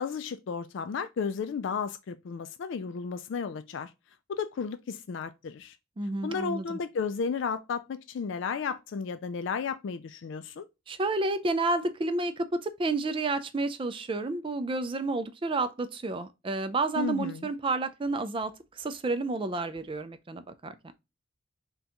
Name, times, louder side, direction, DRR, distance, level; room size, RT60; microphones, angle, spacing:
voice 1, 0.0-3.9 4.3-5.8 6.2-10.7 17.0-17.5, left 5 dB, 60° left, 0.3 m, -33 dB
voice 2, 6.0-6.8 10.9-20.9, right 2 dB, 25° right, 0.4 m, -30 dB
4.3 x 2.3 x 3.7 m
head